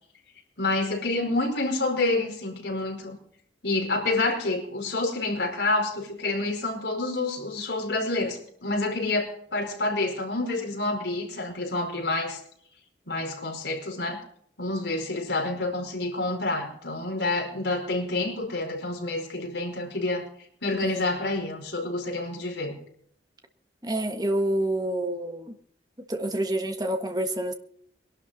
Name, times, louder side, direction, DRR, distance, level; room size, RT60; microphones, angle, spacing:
voice 1, 0.6-3.2 3.6-12.4 13.1-14.2 14.6-20.3 20.6-22.8, left 2 dB, 75° left, 4.7 m, -28 dB
voice 2, 20.8-21.2 23.8-25.5 26.1-27.5, right 1 dB, 20° right, 1.5 m, -28 dB
22.0 x 12.0 x 4.1 m
head